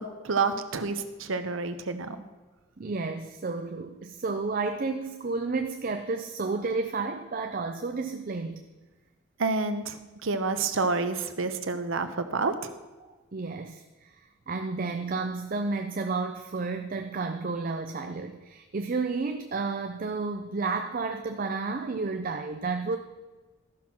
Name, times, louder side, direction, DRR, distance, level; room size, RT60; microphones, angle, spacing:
voice 1, 0.2-2.2 9.4-10.0 10.2-12.7, right 4 dB, 70° right, 9 dB, 0.8 m, -28 dB
voice 2, 2.8-8.6 13.3-14.1 14.5-23.0, right 3 dB, 40° right, 6 dB, 0.5 m, -31 dB
13.5 x 5.8 x 6.1 m, 1.2 s
head